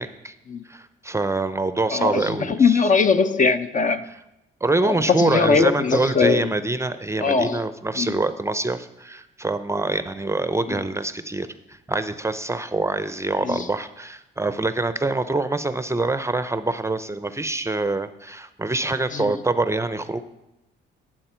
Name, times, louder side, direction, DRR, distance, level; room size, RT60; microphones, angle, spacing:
voice 1, 0.0-0.3 0.6-2.8 4.6-20.2, right 2 dB, 15° right, 12 dB, 0.6 m, -25 dB
voice 2, 1.9-4.1 4.8-6.5 7.2-7.6 8.0-8.2 13.4-13.7 19.1-19.3, left 5 dB, 40° left, 9 dB, 0.8 m, -21 dB
18.0 x 7.5 x 4.5 m, 0.91 s
cardioid pair, 90°, 20 cm